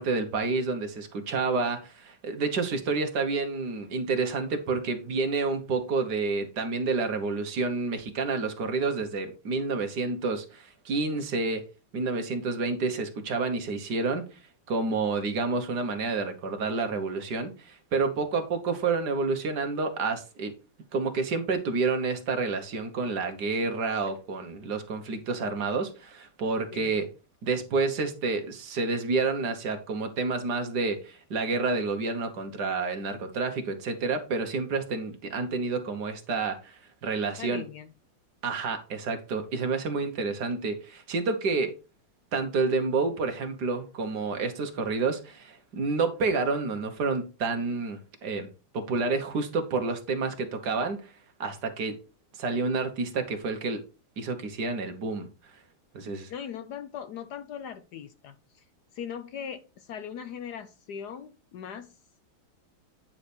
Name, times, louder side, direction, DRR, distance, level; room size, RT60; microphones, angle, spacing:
voice 1, 0.0-11.6 11.9-14.2 14.7-20.5 20.9-27.1 27.4-37.6 38.4-41.7 42.3-48.5 48.7-51.0 51.4-52.0 52.4-53.8 54.2-55.3 55.9-56.3, right 4 dB, 55° right, 1.7 m, -29 dB
voice 2, 37.4-37.9 39.6-39.8 56.3-58.6 58.9-61.9, left 8 dB, 70° left, 1.0 m, -40 dB
9.5 x 4.9 x 4.3 m
omnidirectional pair, 2.3 m